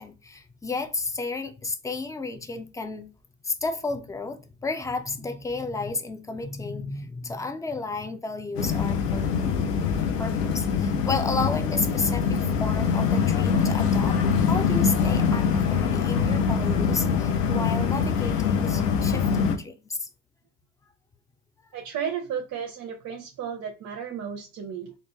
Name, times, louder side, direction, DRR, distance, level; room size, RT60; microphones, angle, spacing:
voice 1, 0.0-3.1 3.4-9.5 10.2-20.1, left 3 dB, 10° left, 0.4 m, -32 dB
sound 1, 8.6-19.6, left 6 dB, 90° left, 0.7 m, -24 dB
voice 2, 21.7-24.9, right 7 dB, 35° right, 0.8 m, -33 dB
3.6 x 2.5 x 2.6 m
hypercardioid pair, 80°, 46 cm